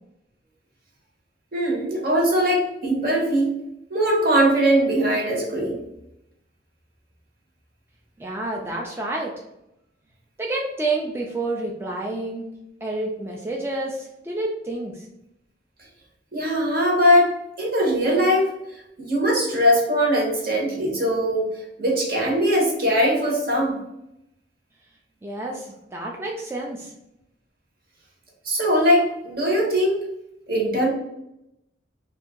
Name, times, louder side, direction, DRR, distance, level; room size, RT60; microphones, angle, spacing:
voice 1, 1.5-3.5 3.9-5.8 16.3-18.5 19.0-21.5 21.8-23.8 28.4-30.0 30.5-30.9, equal, 55° right, -2 dB, 1.1 m, -20 dB
voice 2, 8.2-9.3 10.4-12.4 12.8-15.1 25.2-26.9, right 2 dB, 15° right, -1 dB, 0.3 m, -29 dB
2.8 x 2.5 x 3.6 m, 0.85 s
head